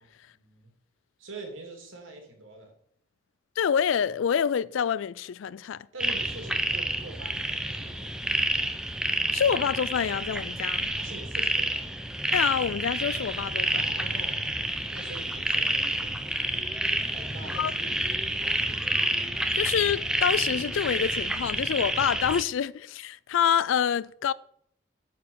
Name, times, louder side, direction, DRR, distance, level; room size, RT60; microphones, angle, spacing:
voice 1, 0.3-0.7 1.2-2.7 5.9-8.3 10.9-11.9 13.6-14.6 14.9-16.3 17.1-18.7, right 2 dB, 80° right, 2.5 m, -45 dB
voice 2, 3.6-5.9 9.3-10.9 12.3-13.9 17.6-17.7 19.5-24.3, left 8 dB, 80° left, 0.3 m, -27 dB
sound 1, 6.0-22.4, right 1 dB, 5° right, 0.6 m, -29 dB
8.6 x 4.8 x 6.9 m
head